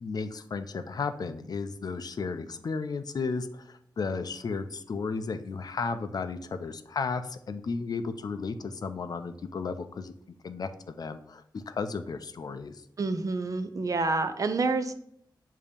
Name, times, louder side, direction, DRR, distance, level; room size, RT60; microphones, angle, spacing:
voice 1, 0.0-10.1 10.4-12.7, left 4 dB, 55° left, 9 dB, 0.4 m, -34 dB
voice 2, 13.0-14.9, right 3 dB, 45° right, 9 dB, 0.5 m, -28 dB
6.9 x 2.7 x 5.0 m, 0.70 s
wide cardioid pair, 140°, 8 cm